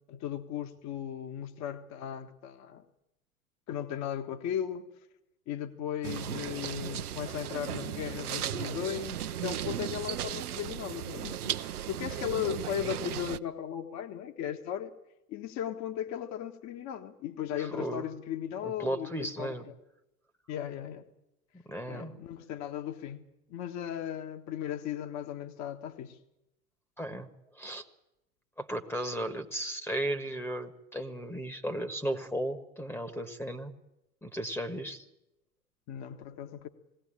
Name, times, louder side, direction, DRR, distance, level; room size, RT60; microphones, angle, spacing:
voice 1, 0.1-2.8 3.7-4.8 5.5-14.9 15.3-19.7 20.5-21.1 21.9-26.2 35.9-36.7, left 10 dB, 35° left, 1.6 m, -37 dB
sound 1, 6.0-13.4, right 11 dB, 75° right, 0.8 m, -36 dB
voice 2, 17.6-18.0 18.6-19.6 21.7-22.1 27.0-27.3 27.5-27.8 28.6-33.7 34.2-35.0, right 1 dB, 5° left, 1.4 m, -35 dB
20.0 x 17.0 x 8.9 m
figure-of-eight pair, 90°, 45 cm